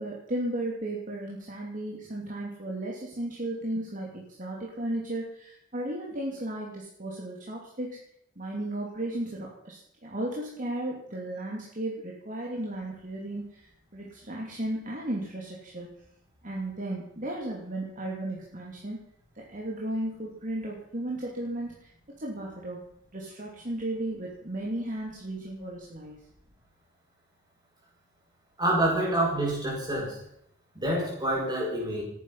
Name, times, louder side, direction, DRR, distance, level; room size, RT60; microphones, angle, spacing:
voice 1, 0.0-8.0 8.4-13.7 13.9-15.9 16.4-19.0 19.3-21.9 22.2-22.8 23.1-26.2, right 1 dB, 40° right, -3 dB, 3.0 m, -35 dB
voice 2, 28.6-30.2 30.7-32.0, right 1 dB, 20° right, -3 dB, 6.6 m, -27 dB
19.0 x 10.0 x 5.7 m, 0.74 s
head